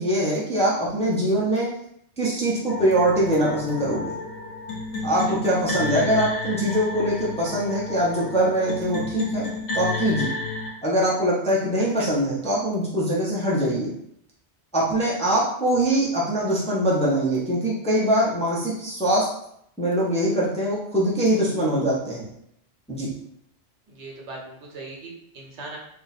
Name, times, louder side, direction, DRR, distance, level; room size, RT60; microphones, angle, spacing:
voice 1, 0.0-1.7 2.2-4.2 5.0-9.5 9.7-10.3 10.8-13.9 14.7-19.3 19.8-22.3 22.9-23.1, right 1 dB, 5° left, -6 dB, 0.6 m, -23 dB
sound 1, 2.7-10.7, left 3 dB, 80° left, 1.1 m, -31 dB
voice 2, 23.9-25.8, right 2 dB, 75° right, -1 dB, 1.1 m, -39 dB
2.6 x 2.2 x 4.0 m, 0.72 s
omnidirectional pair, 1.2 m